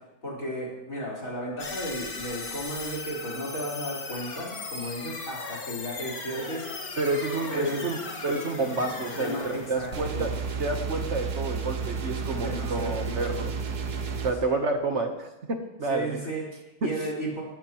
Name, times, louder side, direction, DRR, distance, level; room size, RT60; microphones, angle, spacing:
voice 1, 0.2-6.7 7.5-7.9 9.1-10.4 12.4-13.5 14.4-14.6 15.9-17.4, equal, 60° left, -5 dB, 4.9 m, -34 dB
sound 1, 1.6-10.8, left 3 dB, 75° left, 2.2 m, -38 dB
voice 2, 7.0-10.3 10.6-13.5 14.2-16.1 16.8-16.9, right 3 dB, 50° right, 5 dB, 1.4 m, -29 dB
sound 2, 9.9-14.3, right 5 dB, 90° right, 1.7 m, -32 dB
18.5 x 14.0 x 3.1 m, 0.97 s
omnidirectional pair, 1.6 m